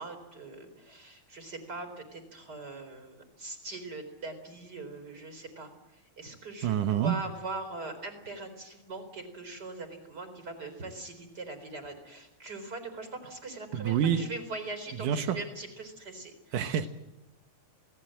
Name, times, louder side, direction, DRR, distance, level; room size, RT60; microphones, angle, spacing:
voice 1, 0.0-16.8, right 3 dB, 25° right, 4.2 m, -41 dB
voice 2, 6.6-7.2 13.7-14.3 15.0-15.4 16.5-16.9, right 9 dB, 65° right, 2.3 m, -27 dB
29.0 x 19.0 x 7.8 m
omnidirectional pair, 4.7 m